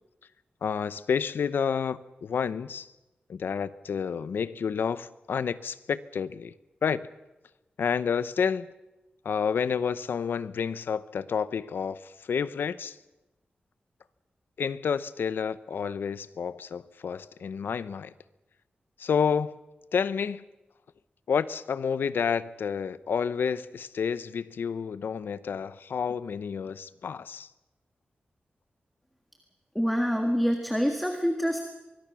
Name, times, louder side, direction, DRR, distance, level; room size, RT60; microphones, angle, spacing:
voice 1, 0.6-2.9 3.3-6.5 6.8-7.1 7.8-8.7 9.2-13.0 14.6-18.1 19.0-19.6 19.9-20.4 21.3-27.5, left 6 dB, 90° left, 0.8 m, -29 dB
voice 2, 29.7-31.6, equal, ahead, 1.7 m, -26 dB
25.0 x 21.0 x 6.2 m
wide cardioid pair, 160°, 3 cm